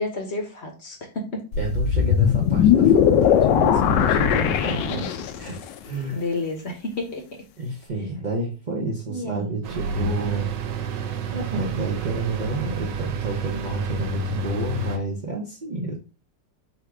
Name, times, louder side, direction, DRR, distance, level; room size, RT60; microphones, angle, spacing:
voice 1, 0.0-1.4 4.6-5.1 6.1-7.2 9.1-9.5, left 2 dB, 50° left, 4 dB, 0.9 m, -30 dB
sound 1, 1.5-5.5, left 9 dB, 75° left, 1.2 m, -19 dB
voice 2, 1.6-6.2 7.6-10.5 11.3-16.0, right 2 dB, 55° right, -2 dB, 0.5 m, -30 dB
sound 2, 9.6-15.0, right 3 dB, 75° right, 1.3 m, -29 dB
4.1 x 2.5 x 4.6 m, 0.32 s
omnidirectional pair, 2.0 m